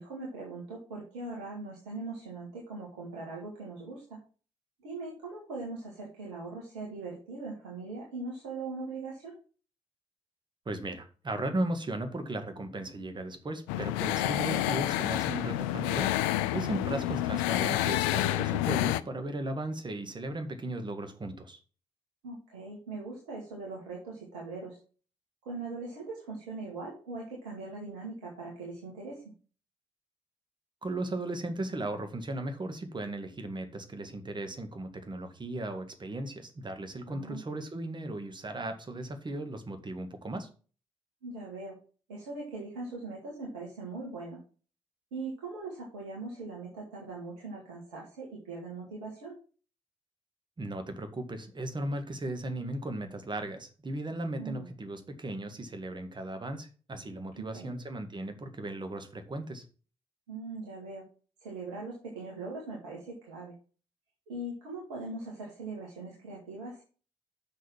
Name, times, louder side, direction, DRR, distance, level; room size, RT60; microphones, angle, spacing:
voice 1, 0.0-4.2 4.8-9.3 16.8-17.0 22.2-24.8 25.4-29.3 37.1-37.4 41.2-41.8 42.1-44.4 45.1-49.4 54.4-54.7 57.3-57.7 60.3-61.1 61.4-63.5 64.3-66.8, right 3 dB, 75° right, -4 dB, 2.3 m, -40 dB
voice 2, 10.7-16.1 16.5-21.6 30.8-40.5 50.6-59.6, right 1 dB, 30° right, 7 dB, 1.8 m, -36 dB
sound 1, 13.7-19.0, left 14 dB, 70° left, 0.4 m, -29 dB
6.5 x 6.4 x 7.2 m, 0.38 s
figure-of-eight pair, 40°, 15 cm